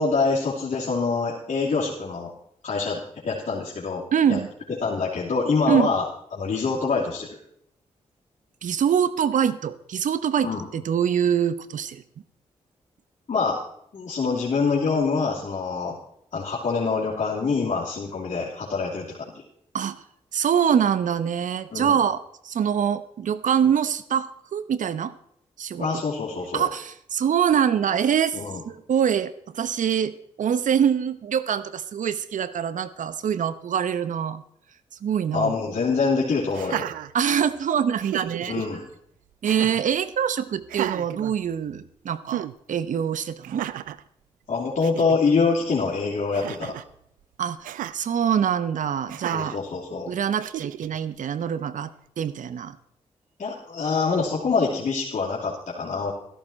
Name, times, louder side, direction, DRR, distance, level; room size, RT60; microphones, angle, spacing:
voice 1, 0.0-2.3 2.6-4.0 4.3-4.4 4.8-6.0 6.3-7.3 10.4-10.6 13.3-13.6 13.9-15.9 16.3-19.3 21.7-22.0 25.8-26.6 28.3-28.6 35.3-36.9 38.5-38.8 44.5-46.8 49.3-50.1 53.4-56.1, left 4 dB, 60° left, -6 dB, 3.0 m, -25 dB
voice 2, 4.1-4.5 5.7-5.9 8.6-12.0 19.7-20.0 20.3-25.1 25.6-26.0 26.5-28.4 28.6-34.4 35.0-35.6 37.1-38.6 39.4-43.7 47.4-47.7 47.9-49.6 50.1-52.8, right 8 dB, 70° right, 15 dB, 0.9 m, -24 dB
Laughter, 36.5-37.6 38.0-38.7 39.4-39.9 40.6-41.9 42.3-42.5 43.4-44.0 44.5-44.6 44.8-45.2 46.3-46.9 47.6-48.0 49.1-49.6 50.4-51.0, right 13 dB, 90° right, 0.4 m, -34 dB
13.5 x 12.0 x 4.3 m, 0.70 s
supercardioid pair, 45°, 14 cm